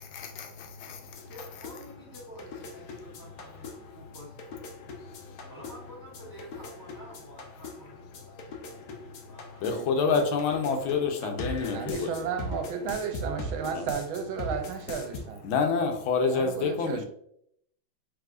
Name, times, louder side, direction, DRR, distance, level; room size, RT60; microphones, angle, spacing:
voice 1, 0.0-1.3 3.2-4.2 4.7-5.5 8.1-12.3 13.7-13.9 15.4-17.1, left 5 dB, 80° left, 5 dB, 1.5 m, -30 dB
sound 1, 1.1-15.2, left 2 dB, 65° left, 1.0 m, -41 dB
voice 2, 1.2-4.8 5.5-9.6, equal, 10° left, -6 dB, 1.2 m, -50 dB
voice 3, 9.6-10.2 11.7-15.4 16.2-17.1, right 6 dB, 85° right, 6 dB, 1.4 m, -34 dB
4.7 x 3.4 x 2.4 m, 0.70 s
omnidirectional pair, 2.2 m